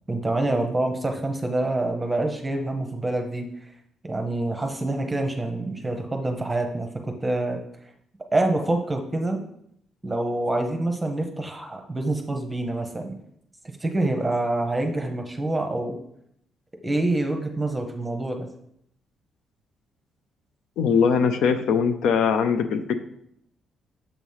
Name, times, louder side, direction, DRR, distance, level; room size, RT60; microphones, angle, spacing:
voice 1, 0.1-3.5 4.0-7.6 8.3-9.4 10.0-13.1 13.8-16.0 16.8-18.5, right 2 dB, 15° right, 4 dB, 0.9 m, -26 dB
voice 2, 20.8-23.0, left 6 dB, 85° left, 9 dB, 0.5 m, -21 dB
7.0 x 3.0 x 5.5 m, 0.72 s
cardioid pair, 90°, 0 cm